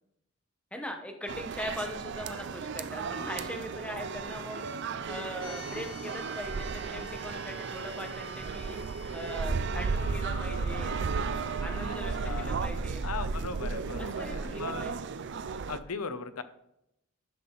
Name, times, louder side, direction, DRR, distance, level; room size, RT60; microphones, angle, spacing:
voice 1, 0.7-4.8 5.1-8.8 9.1-10.9 11.6-13.0 14.0-14.9, equal, 5° left, 4 dB, 1.0 m, -40 dB
sound 1, 1.3-15.8, right 5 dB, 55° right, 0.4 m, -34 dB
sound 2, 5.4-9.4, left 4 dB, 65° left, 2.0 m, -50 dB
sound 3, 9.8-12.9 14.2-14.3, left 3 dB, 45° left, 2.1 m, -49 dB
voice 2, 11.9-14.9 15.7-16.4, left 5 dB, 85° left, 11 dB, 0.7 m, -39 dB
10.5 x 5.9 x 3.9 m, 0.80 s
head